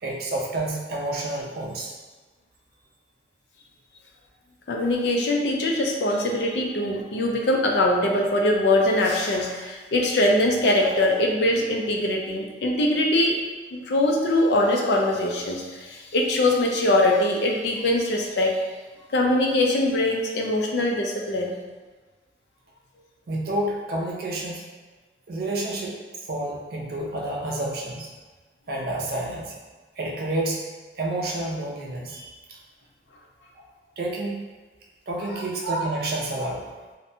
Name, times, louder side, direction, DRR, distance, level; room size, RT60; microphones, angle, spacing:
voice 1, 0.0-1.9 23.3-24.6 25.3-28.1 28.7-29.5 30.0-30.6 31.0-32.6 34.0-34.4 35.1-36.6, right 1 dB, 55° right, -2 dB, 0.5 m, -29 dB
voice 2, 4.7-13.4 13.7-18.7 19.1-21.6, left 1 dB, 65° left, 0 dB, 0.4 m, -22 dB
2.6 x 2.1 x 2.6 m, 1.3 s
head